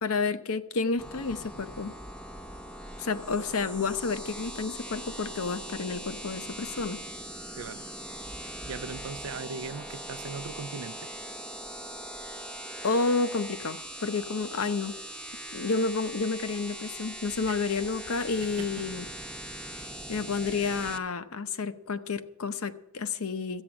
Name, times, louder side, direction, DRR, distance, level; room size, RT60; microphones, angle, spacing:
voice 1, 0.0-1.9 3.0-7.0 12.8-15.0 15.5-19.0 19.8-23.6, left 4 dB, 85° left, 0.8 m, -30 dB
sound 1, 1.0-21.0, right 1 dB, 5° left, 0.7 m, -41 dB
voice 2, 7.5-7.9 8.4-11.1 17.5-17.6 18.6-18.7, right 5 dB, 85° right, 0.5 m, -39 dB
13.5 x 8.8 x 7.1 m
head